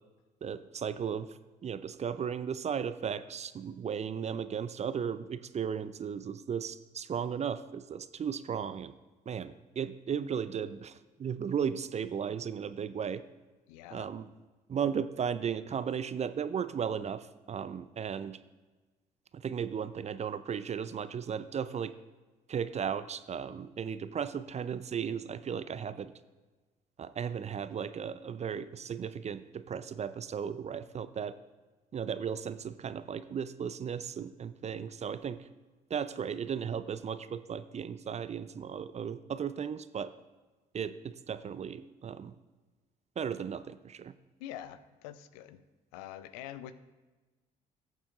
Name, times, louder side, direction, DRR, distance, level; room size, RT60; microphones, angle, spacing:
voice 1, 0.4-1.3 1.6-8.9 9.3-13.2 13.9-14.3 14.7-18.4 19.3-21.9 22.5-26.1 27.0-31.3 31.9-35.4 35.9-40.1 40.7-42.3 43.2-44.1, right 7 dB, 30° right, 14 dB, 0.5 m, -35 dB
voice 2, 13.7-14.1 44.4-45.6 45.9-46.7, left 11 dB, 70° left, 14 dB, 0.5 m, -45 dB
18.0 x 7.1 x 2.4 m, 1.2 s
figure-of-eight pair, 45°, 21 cm